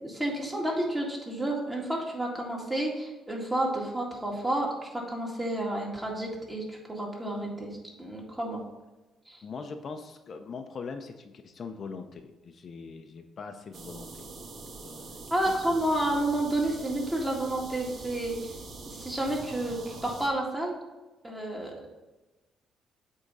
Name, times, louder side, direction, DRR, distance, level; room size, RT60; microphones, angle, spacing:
voice 1, 0.0-8.6 9.3-9.4 15.3-18.4 18.9-20.8 21.2-21.7, right 1 dB, 15° right, -2 dB, 2.1 m, -30 dB
voice 2, 9.4-15.1 15.7-15.8, left 5 dB, 50° left, 6 dB, 0.6 m, -42 dB
sound 1, 13.7-20.3, right 3 dB, 60° right, 1.2 m, -44 dB
8.0 x 3.7 x 5.3 m, 1.1 s
cardioid pair, 90°, 0 cm